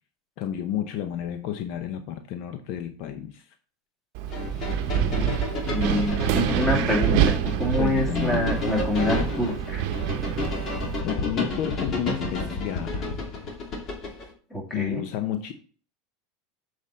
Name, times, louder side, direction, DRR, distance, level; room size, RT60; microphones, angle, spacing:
voice 1, 0.4-3.5 7.0-7.1 7.7-8.5 11.0-13.2 14.7-15.5, left 10 dB, 60° left, 0.7 m, -31 dB
Wind, 4.1-11.0, right 10 dB, 65° right, 0.7 m, -27 dB
sound 1, 4.3-14.3, left 3 dB, 45° left, 2.5 m, -31 dB
voice 2, 4.9-5.4 5.6-7.3 7.6-9.8 14.5-15.0, left 1 dB, 10° left, 2.7 m, -26 dB
7.4 x 4.9 x 4.1 m
hypercardioid pair, 95°, 0 cm